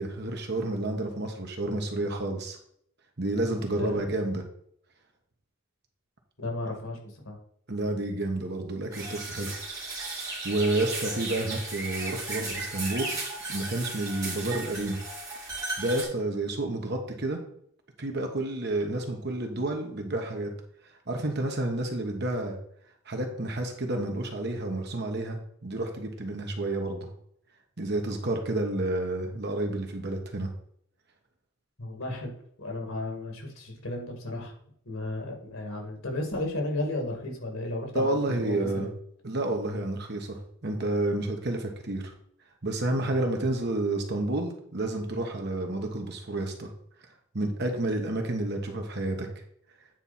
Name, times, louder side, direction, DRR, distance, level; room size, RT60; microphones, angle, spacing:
voice 1, 0.0-2.6 3.2-4.4 7.7-9.5 10.4-13.2 13.5-15.0 15.8-17.4 18.0-20.5 21.1-22.6 23.1-27.1 27.8-30.5 37.9-38.9 39.2-42.1 42.6-46.7 47.3-49.3, right 2 dB, 55° right, 3 dB, 1.4 m, -30 dB
voice 2, 3.5-4.0 6.4-7.0 7.2-7.4 31.8-32.3 32.6-34.5 34.9-38.9, left 2 dB, 85° left, 1 dB, 2.3 m, -34 dB
sound 1, 8.9-16.0, right 2 dB, 20° right, 2.9 m, -35 dB
9.2 x 4.5 x 4.3 m, 0.69 s
head